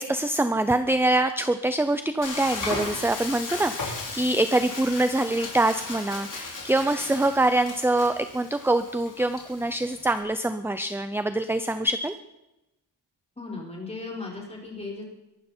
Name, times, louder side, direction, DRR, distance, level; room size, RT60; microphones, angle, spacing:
voice 1, 0.0-12.2, right 2 dB, 5° right, 10 dB, 0.5 m, -24 dB
Frying (food), 2.2-10.2, left 3 dB, 50° left, 4.5 m, -36 dB
voice 2, 13.4-15.1, left 3 dB, 15° left, -2 dB, 4.9 m, -36 dB
22.5 x 12.5 x 4.4 m, 0.95 s
wide cardioid pair, 175°, 40 cm